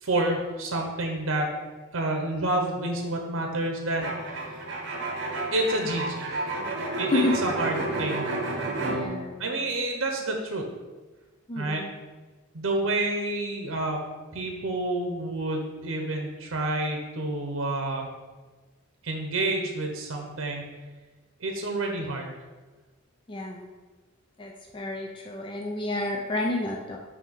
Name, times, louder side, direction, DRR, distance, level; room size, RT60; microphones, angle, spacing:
voice 1, 0.0-1.5 1.9-4.5 5.5-6.4 7.0-8.2 9.4-10.7 11.6-11.8 12.5-14.0 14.3-18.1 19.0-20.6 21.4-22.3, right 2 dB, 85° right, 2 dB, 0.8 m, -29 dB
sound 1, 4.0-9.1, right 2 dB, 60° right, 1.0 m, -31 dB
voice 2, 7.1-7.5 8.9-9.6 11.5-11.9 23.3-23.7 24.4-27.0, left 2 dB, 25° left, 0 dB, 0.4 m, -30 dB
6.1 x 2.7 x 5.6 m, 1.3 s
head